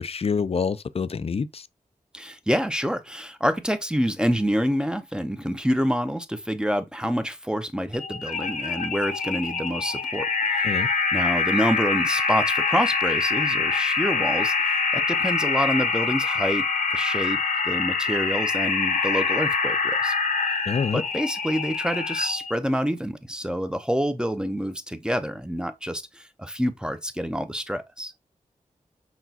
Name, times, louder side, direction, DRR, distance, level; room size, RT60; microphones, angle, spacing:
voice 1, 0.0-1.7 10.6-10.9 20.7-21.0, left 5 dB, 45° left, 0.4 m, -26 dB
voice 2, 2.1-10.3 10.5-10.7 11.1-16.6 16.9-17.4 17.7-20.1 20.9-28.1, equal, 5° right, 0.6 m, -27 dB
sound 1, 7.9-22.5, left 4 dB, 70° left, 1.0 m, -25 dB
5.9 x 2.3 x 2.8 m
cardioid pair, 45°, 15 cm